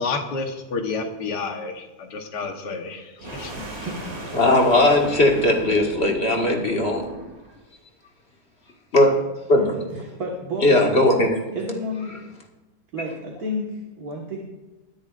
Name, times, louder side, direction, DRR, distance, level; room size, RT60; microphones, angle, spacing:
voice 1, 0.0-3.0 3.3-3.5, left 4 dB, 80° left, 4 dB, 1.8 m, -29 dB
sound 1, 3.2-7.5, right 1 dB, 40° right, 2.4 m, -37 dB
voice 2, 3.6-4.4 9.6-10.8 11.5-12.2 12.9-14.4, left 1 dB, 60° right, -1 dB, 2.0 m, -31 dB
voice 3, 4.3-7.1 8.9-9.1 9.5-10.0 10.6-11.4, left 1 dB, 40° left, 1 dB, 2.0 m, -18 dB
21.5 x 10.0 x 2.5 m, 1.1 s
omnidirectional pair, 1.8 m